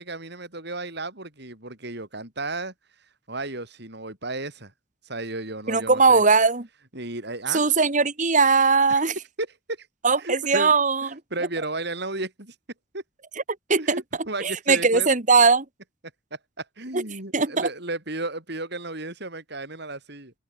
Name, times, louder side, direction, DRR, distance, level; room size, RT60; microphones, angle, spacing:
voice 1, 0.0-2.7 3.3-4.7 5.0-6.2 6.9-7.6 9.4-9.9 10.2-10.7 11.3-12.5 12.9-13.0 13.8-15.1 16.3-20.3, right 2 dB, 60° right, 7.8 m, -33 dB
voice 2, 5.7-6.7 7.5-9.1 10.0-11.2 13.7-13.8 14.4-15.7 16.9-17.0 17.3-17.7, right 4 dB, 40° right, 2.0 m, -19 dB
open air
head